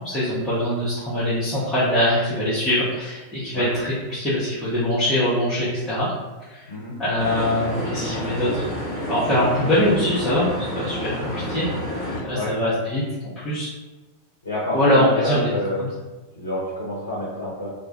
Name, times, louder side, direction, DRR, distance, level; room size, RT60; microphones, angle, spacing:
voice 1, 0.0-6.1 6.5-6.6 7.0-8.6 9.1-11.7 12.2-13.7 14.7-15.4 15.8-15.9, left 1 dB, 15° left, -11 dB, 0.7 m, -23 dB
sound 1, 7.2-12.2, left 1 dB, 30° left, 1.0 m, -29 dB
voice 2, 14.4-15.9 16.3-17.7, left 1 dB, 70° left, -7 dB, 0.6 m, -28 dB
2.2 x 2.1 x 2.7 m, 1.2 s
figure-of-eight pair, 90°, 0 cm